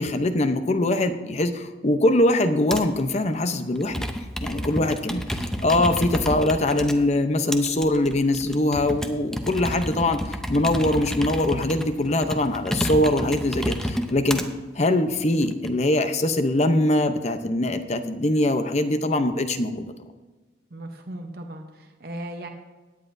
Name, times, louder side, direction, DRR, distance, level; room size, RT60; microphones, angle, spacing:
voice 1, 0.0-4.1 4.4-5.2 5.6-14.5 14.8-19.9, left 1 dB, 40° left, 9 dB, 0.7 m, -22 dB
Computer keyboard, 2.7-3.0 3.7-6.9 7.5-14.5 15.1-15.7, equal, 5° left, 0.7 m, -30 dB
voice 2, 20.7-22.5, right 1 dB, 60° right, 4 dB, 0.9 m, -37 dB
16.5 x 9.9 x 2.7 m, 1.2 s
head